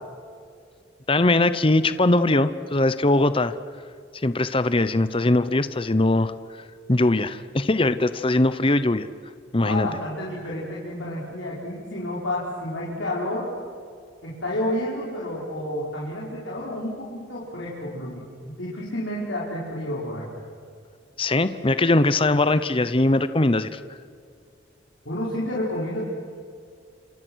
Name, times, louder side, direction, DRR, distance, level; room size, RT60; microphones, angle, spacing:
voice 1, 1.1-3.5 4.1-9.1 9.5-9.9 21.2-24.0, left 2 dB, 30° left, 13 dB, 0.8 m, -21 dB
voice 2, 9.6-13.5 14.2-20.4 25.0-26.0, left 1 dB, 85° left, -5 dB, 5.1 m, -30 dB
30.0 x 27.5 x 6.4 m, 2.3 s
head